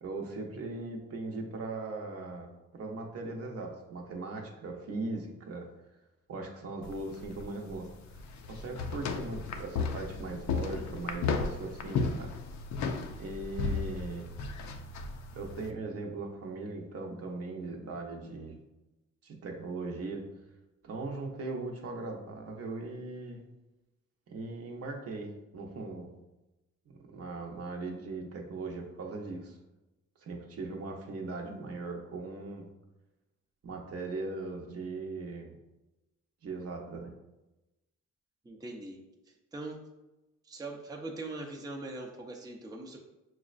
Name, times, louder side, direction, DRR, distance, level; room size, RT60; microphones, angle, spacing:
voice 1, 0.0-5.7 6.3-7.9 8.5-12.3 13.2-14.3 15.3-18.6 19.2-20.2 20.8-23.4 24.3-26.1 27.0-29.6 30.2-32.7 33.6-35.5 36.4-37.1, right 3 dB, 50° right, 1 dB, 0.7 m, -39 dB
sound 1, 6.8-15.7, left 4 dB, 65° left, 0.5 m, -35 dB
voice 2, 38.4-39.0 39.5-39.8 40.5-43.0, right 2 dB, 15° right, 0 dB, 0.5 m, -41 dB
5.9 x 2.1 x 2.4 m, 1.0 s
cardioid pair, 90°, 30 cm